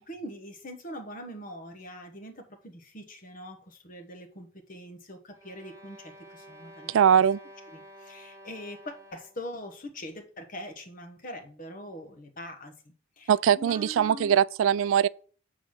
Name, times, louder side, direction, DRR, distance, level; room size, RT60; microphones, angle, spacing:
voice 1, 0.0-6.9 7.7-12.7 13.2-14.4, left 1 dB, 40° left, 1.2 m, -42 dB
sound 1, 5.3-9.5, equal, 15° right, 1.1 m, -50 dB
voice 2, 6.9-7.4 13.3-15.1, right 8 dB, 80° right, 0.3 m, -21 dB
8.1 x 4.0 x 6.4 m
head